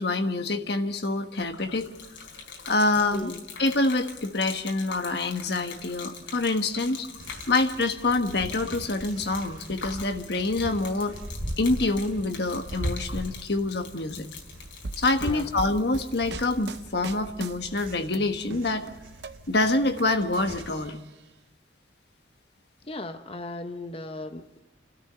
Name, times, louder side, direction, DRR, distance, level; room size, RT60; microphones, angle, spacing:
voice 1, 0.0-1.9 2.7-3.3 3.6-7.1 7.5-11.2 11.6-14.3 15.0-18.9 19.5-21.0, left 2 dB, 60° left, 7 dB, 1.4 m, -26 dB
Gurgling / Liquid, 1.4-16.8, left 5 dB, 85° left, 3.8 m, -44 dB
voice 2, 3.1-3.4 15.2-15.5 22.9-24.6, left 2 dB, 30° left, 9 dB, 0.9 m, -37 dB
sound 1, 7.2-20.9, right 1 dB, 90° right, 3.3 m, -40 dB
sound 2, 14.8-18.2 18.5-20.0 20.3-21.2, right 3 dB, 60° right, 0.7 m, -39 dB
29.5 x 13.0 x 6.8 m, 1.1 s
head